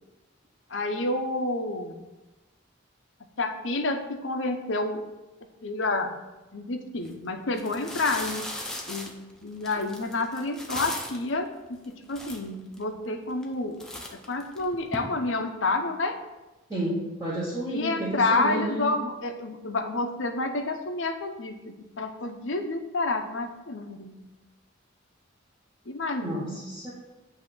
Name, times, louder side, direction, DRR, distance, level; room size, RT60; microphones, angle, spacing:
voice 1, 0.7-2.0 3.4-5.0 5.6-6.1 6.5-8.5 8.9-13.8 14.3-16.2 17.7-24.2 25.9-26.6, left 2 dB, 70° left, 6 dB, 0.7 m, -29 dB
sound 1, 7.0-7.1 7.5-11.3 11.8-11.9 12.1-12.8 13.3-13.5 13.8-15.0, left 1 dB, 5° left, 0.8 m, -37 dB
voice 2, 16.7-18.9 26.2-26.9, right 1 dB, 20° right, -7 dB, 1.2 m, -31 dB
8.3 x 2.8 x 6.2 m, 1.1 s
head